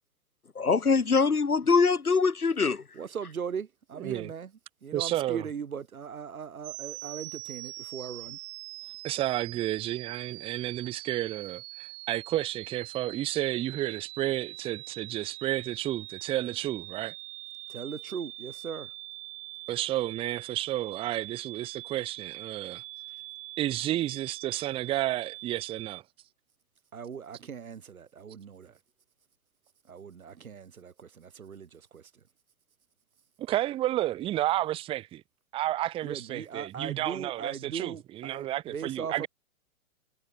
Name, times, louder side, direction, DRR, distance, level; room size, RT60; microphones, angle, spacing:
voice 1, 0.6-2.8, left 4 dB, 90° left, 1.9 m, -23 dB
voice 2, 3.0-4.5 4.8-8.4 17.7-18.9 26.9-28.7 29.9-32.0 36.0-39.3, right 7 dB, 75° right, 2.8 m, -39 dB
voice 3, 4.0-4.3 4.9-5.5 9.0-17.1 19.7-22.8 23.6-26.0 33.4-35.2 35.5-39.3, right 14 dB, 15° right, 0.7 m, -31 dB
sound 1, 6.6-26.0, right 26 dB, 40° right, 7.8 m, -43 dB
figure-of-eight pair, 120°, 43 cm